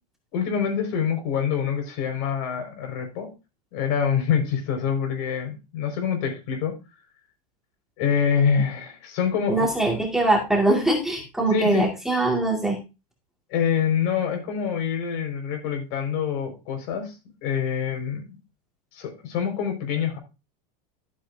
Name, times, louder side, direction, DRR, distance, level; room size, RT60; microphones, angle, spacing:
voice 1, 0.3-3.3 3.7-6.8 8.0-9.7 11.5-11.9 13.5-17.2 17.4-18.4 18.9-20.2, left 7 dB, 55° left, 5 dB, 5.1 m, -26 dB
voice 2, 9.5-12.8, right 2 dB, ahead, -1 dB, 2.1 m, -22 dB
13.0 x 9.0 x 2.7 m, 0.28 s
supercardioid pair, 150°, 21 cm